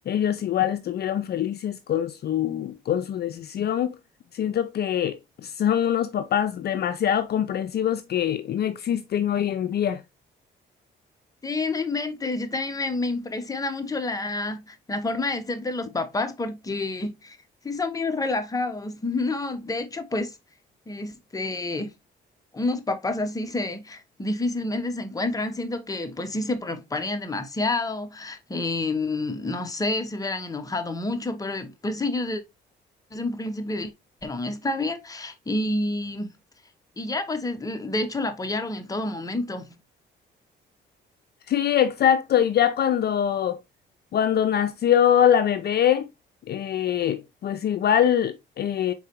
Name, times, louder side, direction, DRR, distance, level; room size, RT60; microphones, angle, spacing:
voice 1, 0.1-4.0 4.3-10.0 41.5-43.6 44.1-46.1 46.5-48.9, left 9 dB, 55° left, 0.5 m, -23 dB
voice 2, 11.4-17.4 17.6-20.4 20.9-21.9 22.5-32.4 33.1-33.9 34.2-36.3 37.0-39.7, left 2 dB, 15° left, 0.8 m, -29 dB
4.7 x 3.8 x 2.8 m
cardioid pair, 90°, 20 cm